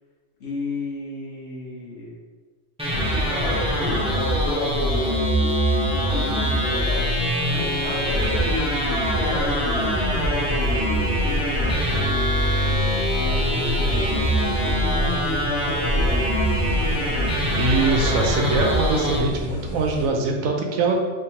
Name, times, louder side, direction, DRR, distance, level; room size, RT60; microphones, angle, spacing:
voice 1, 0.4-2.2 3.1-8.7 9.1-17.2, left 2 dB, 65° left, -5 dB, 1.4 m, -34 dB
sound 1, 2.8-19.2, equal, 5° right, 0.5 m, -23 dB
sound 2, 7.5-20.1, equal, 85° left, 1.5 m, -33 dB
sound 3, 8.1-19.5, equal, 50° right, 0.6 m, -34 dB
voice 2, 17.6-20.9, right 3 dB, 85° right, 2 dB, 1.0 m, -23 dB
3.6 x 3.2 x 2.9 m, 1.4 s
omnidirectional pair, 1.4 m